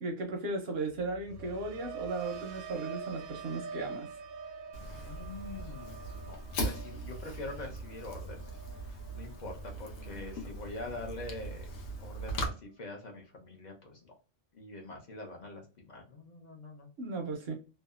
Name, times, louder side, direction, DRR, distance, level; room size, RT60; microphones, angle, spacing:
voice 1, 0.0-4.1 17.0-17.5, right 3 dB, 65° right, 0.6 m, -36 dB
sound 1, 0.9-11.0 11.3-11.8, right 5 dB, 90° right, 1.0 m, -46 dB
Fire, 4.7-12.5, right 1 dB, 70° left, 0.9 m, -40 dB
voice 2, 4.8-8.6 8.9-11.7 12.0-14.1 14.5-16.9, left 2 dB, 50° left, 0.5 m, -44 dB
2.7 x 2.1 x 2.3 m
omnidirectional pair, 1.4 m